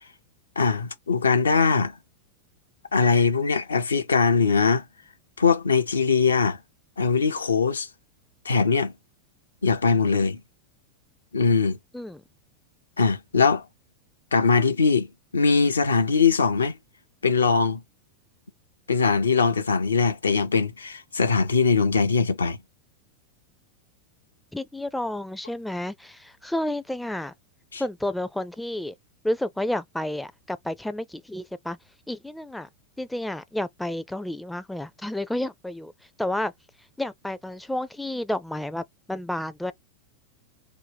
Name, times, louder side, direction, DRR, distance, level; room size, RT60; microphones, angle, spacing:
voice 1, 0.6-1.9 2.9-4.8 5.4-6.6 7.0-7.9 8.4-8.9 9.6-10.4 11.3-11.8 13.0-13.6 14.3-15.1 15.3-16.8 17.2-17.8 18.9-22.6 27.7-27.8, left 5 dB, 75° left, 0.5 m, -21 dB
voice 2, 24.5-27.3 27.8-28.9 29.2-31.8 32.1-32.7 33.0-35.9 36.2-36.5 37.0-39.7, left 1 dB, 5° left, 0.4 m, -30 dB
2.6 x 2.1 x 3.4 m
figure-of-eight pair, 90°, 0 cm